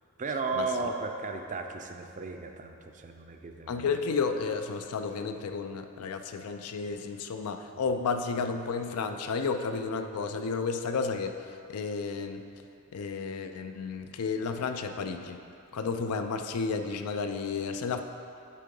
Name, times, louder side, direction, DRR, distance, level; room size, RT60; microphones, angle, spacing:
voice 1, 0.2-3.8, right 3 dB, 35° right, 4 dB, 0.5 m, -34 dB
voice 2, 3.7-12.4 12.9-15.4 15.7-18.0, left 5 dB, 80° left, 7 dB, 0.4 m, -32 dB
8.4 x 3.7 x 5.2 m, 2.7 s
head